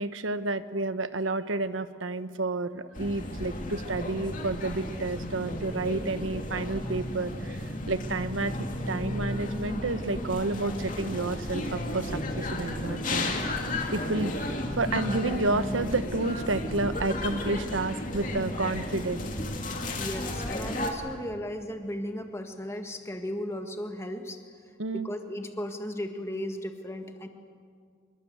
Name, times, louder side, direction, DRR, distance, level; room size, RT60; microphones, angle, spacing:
voice 1, 0.0-13.5 13.9-19.3 24.8-25.1, right 2 dB, 80° right, 12 dB, 1.1 m, -30 dB
sound 1, 2.9-20.9, left 1 dB, 40° left, 2.6 m, -33 dB
voice 2, 20.0-24.4 24.9-27.3, left 1 dB, 15° left, 5 dB, 1.8 m, -35 dB
26.5 x 22.5 x 8.1 m, 2.1 s
head